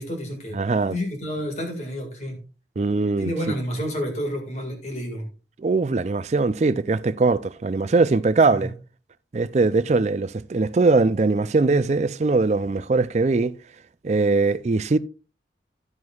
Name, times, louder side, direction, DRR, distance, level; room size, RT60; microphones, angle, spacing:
voice 1, 0.0-0.6 0.9-2.4 3.2-5.3 8.6-8.7, equal, 40° left, 1.9 m, -30 dB
voice 2, 0.5-1.0 2.8-3.3 5.6-8.7 9.3-13.5 14.0-15.0, right 3 dB, 40° right, 0.4 m, -21 dB
11.0 x 9.5 x 2.4 m
head